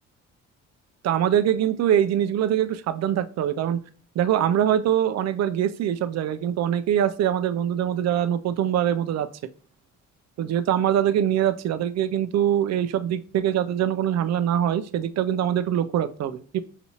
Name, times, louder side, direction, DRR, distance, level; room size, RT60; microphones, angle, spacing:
voice 1, 1.0-3.8 4.2-9.3 10.4-16.6, right 10 dB, 60° right, 0.5 m, -23 dB
5.9 x 2.7 x 2.9 m
cardioid pair, 90°, 30 cm